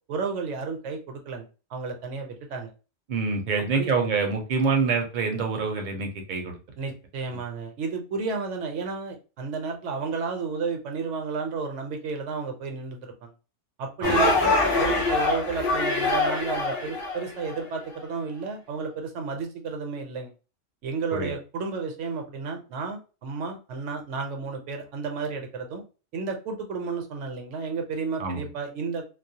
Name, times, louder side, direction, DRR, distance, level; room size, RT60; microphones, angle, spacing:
voice 1, 0.1-2.7 3.7-3.9 6.8-13.3 13.8-20.3 20.8-25.8 26.1-29.0, right 5 dB, 80° right, 4 dB, 0.9 m, -32 dB
voice 2, 3.1-6.6 14.0-14.2 21.1-21.3 28.2-28.5, right 4 dB, 50° right, 3 dB, 0.6 m, -26 dB
sound 1, 14.0-17.6, left 2 dB, 30° left, 0.7 m, -24 dB
2.3 x 2.1 x 2.6 m, 0.33 s
omnidirectional pair, 1.2 m